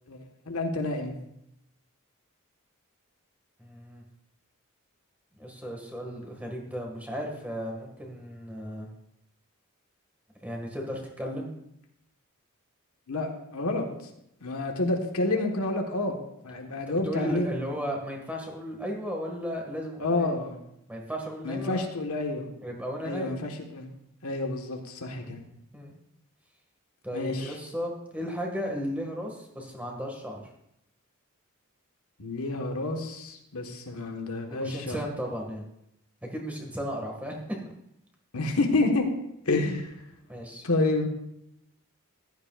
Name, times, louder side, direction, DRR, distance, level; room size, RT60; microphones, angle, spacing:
voice 1, 0.1-1.1 13.1-13.9 14.4-17.5 20.0-20.6 21.4-22.5 23.0-23.9 24.2-25.4 27.1-27.5 32.2-35.0 38.3-39.0 39.4-39.9 40.6-41.1, left 2 dB, 80° left, 3 dB, 1.5 m, -29 dB
voice 2, 3.6-4.0 5.3-8.9 10.4-11.5 17.0-20.3 20.9-21.9 22.6-23.3 25.2-25.3 25.7-26.0 27.0-30.4 34.5-35.6 36.3-37.4 37.6-37.7 40.3-40.6, equal, 5° right, 0 dB, 1.9 m, -35 dB
15.0 x 12.0 x 2.5 m, 0.79 s
head